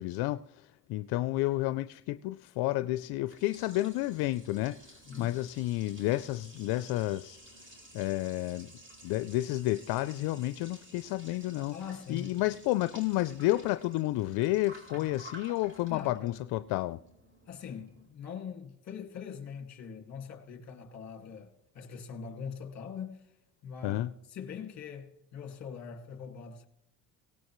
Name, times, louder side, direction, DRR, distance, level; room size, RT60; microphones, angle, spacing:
voice 1, 0.0-7.4 7.9-8.7 9.0-11.7 12.1-17.0 23.8-24.1, left 17 dB, 80° left, 0.5 m, -31 dB
Liquid, 2.9-18.1, right 1 dB, 30° right, 4.1 m, -53 dB
voice 2, 5.1-5.4 11.7-12.4 14.9-15.1 15.9-16.4 17.5-23.2 23.6-26.7, left 6 dB, 45° left, 2.1 m, -42 dB
18.0 x 17.5 x 3.1 m
cardioid pair, 100°, 37 cm